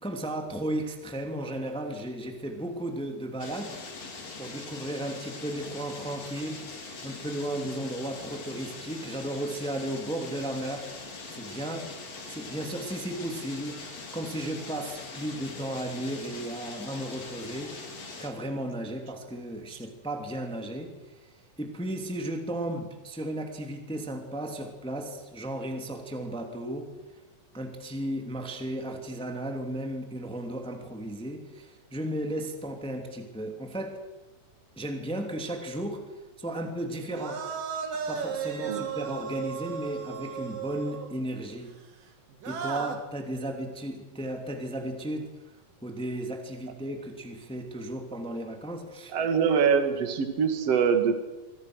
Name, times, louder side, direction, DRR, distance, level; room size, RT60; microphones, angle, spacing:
voice 1, 0.0-3.8 4.4-6.6 7.0-10.9 11.3-11.9 12.3-17.7 18.2-20.9 21.2-21.3 21.6-26.9 27.5-34.0 34.8-36.0 36.4-37.4 38.1-41.7 42.4-45.3 45.8-49.1, right 1 dB, ahead, 4 dB, 2.2 m, -34 dB
sound 1, 3.4-18.3, left 3 dB, 50° left, 4.4 m, -42 dB
sound 2, 36.9-41.3 42.3-43.0, right 6 dB, 75° right, 4.1 m, -35 dB
voice 2, 49.1-51.2, right 6 dB, 50° right, 7 dB, 2.9 m, -24 dB
27.0 x 24.0 x 6.4 m, 1.1 s
omnidirectional pair, 3.9 m